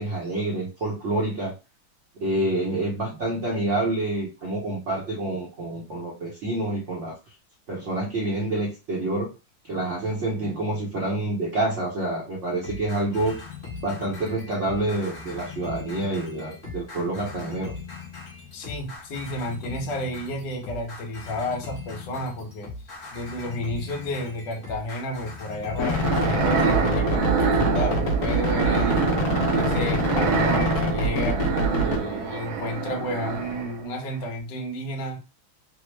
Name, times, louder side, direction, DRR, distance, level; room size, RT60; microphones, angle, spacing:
voice 1, 0.0-1.5 2.2-7.2 7.7-9.3 9.6-13.4 13.8-17.7, right 2 dB, 55° right, -3 dB, 0.8 m, -27 dB
sound 1, 12.6-26.3, left 4 dB, 35° left, 1.2 m, -40 dB
voice 2, 18.5-22.7 23.1-29.1 29.5-31.4 31.8-35.2, left 1 dB, 65° left, 2 dB, 1.4 m, -32 dB
sound 2, 25.8-32.0, left 1 dB, 80° left, 0.7 m, -25 dB
sound 3, 25.8-33.9, right 5 dB, 80° right, 1.4 m, -25 dB
3.4 x 2.0 x 3.1 m, 0.30 s
omnidirectional pair, 2.2 m